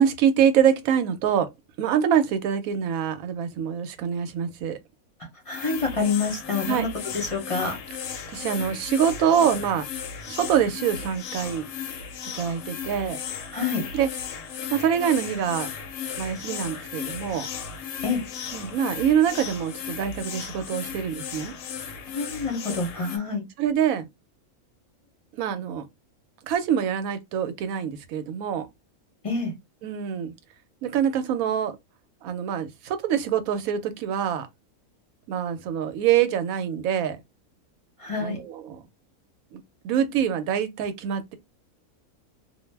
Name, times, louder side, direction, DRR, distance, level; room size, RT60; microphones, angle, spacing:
voice 1, 0.0-1.5 1.8-4.8 6.7-6.9 8.3-9.9 10.3-11.7 12.3-13.2 13.9-14.1 14.7-15.7 16.2-17.5 18.5-21.5 23.6-24.1 25.3-25.9 26.5-28.7 29.8-30.3 30.8-31.8 32.2-34.5 35.3-37.2 38.2-38.8 39.5-41.3, right 8 dB, 75° right, 1.0 m, -25 dB
sound 1, 5.5-23.2, left 7 dB, 70° left, 0.9 m, -35 dB
voice 2, 5.5-6.9 7.1-7.7 13.5-13.8 18.0-18.2 22.1-23.4 29.2-29.5 38.0-38.4, left 4 dB, 35° left, 0.6 m, -27 dB
2.5 x 2.0 x 3.1 m
omnidirectional pair, 1.6 m